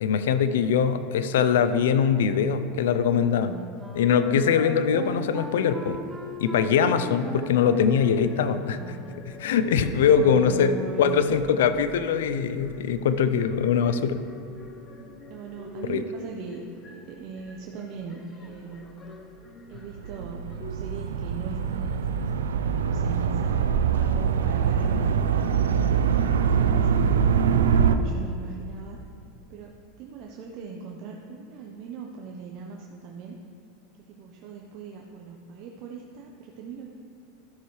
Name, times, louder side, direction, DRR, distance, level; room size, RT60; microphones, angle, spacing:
voice 1, 0.0-3.5 3.9-6.0 6.4-9.0 9.4-10.7 11.0-14.2 15.9-16.0, left 7 dB, 75° left, 11 dB, 0.5 m, -22 dB
Wind instrument woodwind instrument, 3.4-9.3, equal, 10° right, 0.9 m, -38 dB
sound 1, 6.7-20.7, left 1 dB, 30° left, 1.0 m, -46 dB
voice 2, 9.6-11.2 11.7-11.9 15.3-19.0 19.7-25.1 25.8-29.0 29.5-29.7 30.0-33.4 34.1-36.9, right 5 dB, 55° right, 0 dB, 0.8 m, -40 dB
sound 2, 19.9-28.0, right 7 dB, 85° right, 0.4 m, -23 dB
12.5 x 6.6 x 3.2 m, 2.7 s
hypercardioid pair, 100°, 0 cm